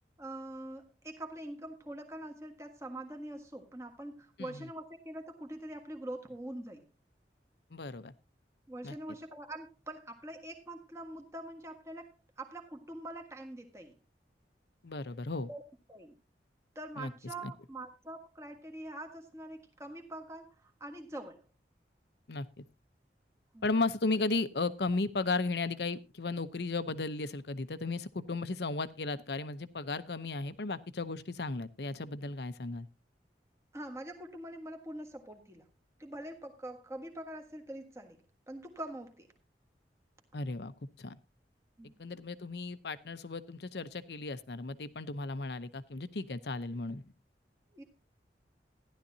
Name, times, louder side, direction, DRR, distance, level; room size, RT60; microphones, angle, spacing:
voice 1, 0.2-6.9 8.7-14.0 15.5-15.6 15.9-16.2 16.7-21.5 23.5-23.6 33.7-35.7 36.0-39.3 41.8-41.9 47.7-47.8, right 1 dB, 15° right, 3 dB, 1.5 m, -44 dB
voice 2, 7.7-8.1 8.8-8.9 14.8-15.5 17.0-17.1 17.4-17.5 22.3-22.6 23.6-32.9 40.3-40.7 41.0-41.2 41.8-47.0, left 3 dB, 70° left, 13 dB, 0.8 m, -35 dB
14.5 x 11.0 x 2.7 m, 0.26 s
head